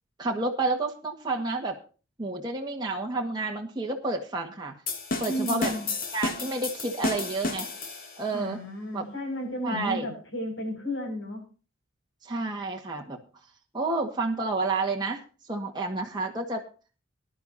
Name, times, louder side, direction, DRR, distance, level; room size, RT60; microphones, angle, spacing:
voice 1, 0.2-1.8 2.2-4.7 5.2-5.7 6.1-7.7 8.2-8.6 8.9-9.0 9.6-10.1 12.2-13.2 13.7-15.2 15.5-16.7, right 3 dB, 20° right, 0 dB, 1.7 m, -30 dB
sound 1, 4.9-8.3, left 3 dB, 45° left, 2.5 m, -32 dB
voice 2, 5.3-5.9 8.3-11.5, equal, 75° left, 3 dB, 6.1 m, -33 dB
19.5 x 11.5 x 2.7 m, 0.35 s
head